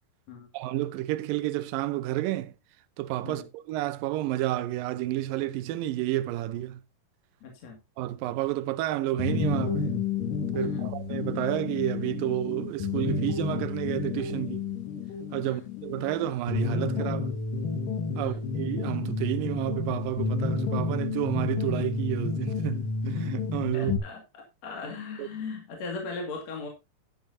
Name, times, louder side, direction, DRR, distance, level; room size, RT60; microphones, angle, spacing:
voice 1, 0.5-2.5 3.0-6.8 8.0-9.9 10.5-14.7 15.3-17.3 18.2-23.9 25.2-25.3, right 15 dB, 90° right, 2.4 m, -30 dB
voice 2, 7.4-7.8 10.5-10.9 15.4-15.6 18.2-18.4 23.7-26.7, left 4 dB, 55° left, 3.1 m, -38 dB
sound 1, 9.2-24.0, left 4 dB, 75° left, 3.3 m, -30 dB
11.0 x 10.5 x 2.7 m
omnidirectional pair, 3.9 m